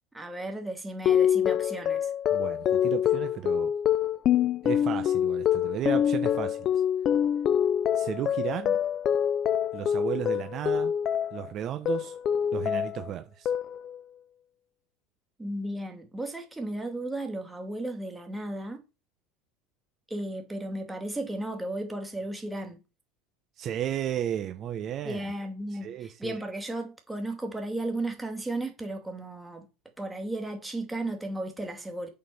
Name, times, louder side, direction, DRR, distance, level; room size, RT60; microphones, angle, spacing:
voice 1, 0.1-2.1 15.4-18.8 20.1-22.8 25.0-29.7 30.0-32.1, right 1 dB, 5° right, 2.6 m, -34 dB
sound 1, 1.1-11.5 11.9-13.1 13.5-14.0, left 9 dB, 40° left, 0.6 m, -26 dB
voice 2, 2.3-3.7 4.6-6.7 7.9-8.8 9.7-10.9 11.3-12.2 12.5-13.5 23.6-25.2 25.8-26.4, right 10 dB, 40° right, 1.1 m, -34 dB
8.4 x 4.5 x 7.1 m
supercardioid pair, 125°, 0 cm